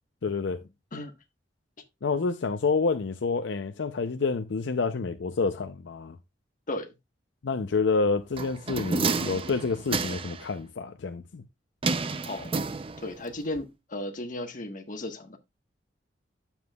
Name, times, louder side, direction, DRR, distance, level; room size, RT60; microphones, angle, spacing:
voice 1, 0.2-0.6 2.0-6.2 7.4-11.4, left 4 dB, 75° left, 0.5 m, -28 dB
sound 1, 8.4-10.5 11.8-13.3 13.6-13.7, right 4 dB, 30° right, 0.5 m, -30 dB
voice 2, 13.0-15.4, left 1 dB, 45° left, 1.2 m, -35 dB
9.5 x 7.1 x 2.3 m
head